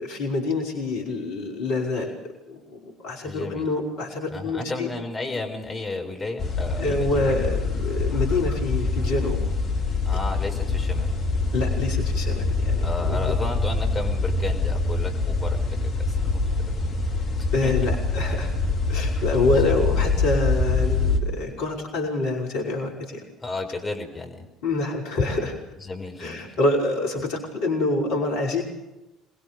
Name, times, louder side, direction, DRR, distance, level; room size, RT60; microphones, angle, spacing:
voice 1, 0.0-2.1 2.5-4.9 6.8-9.4 11.5-13.3 17.5-18.5 18.9-23.2 24.6-25.6 26.2-28.6, left 2 dB, 65° left, 0 dB, 5.5 m, -26 dB
voice 2, 3.2-3.7 4.3-7.3 10.1-11.1 12.8-15.8 16.1-16.2 16.7-16.8 17.6-17.7 19.1-19.2 19.5-19.9 23.4-24.4 25.8-26.4, left 3 dB, 25° left, 3 dB, 5.4 m, -33 dB
sound 1, 6.4-21.2, left 3 dB, 45° left, 4.5 m, -25 dB
26.5 x 22.0 x 6.9 m, 1.0 s
figure-of-eight pair, 55°, 0 cm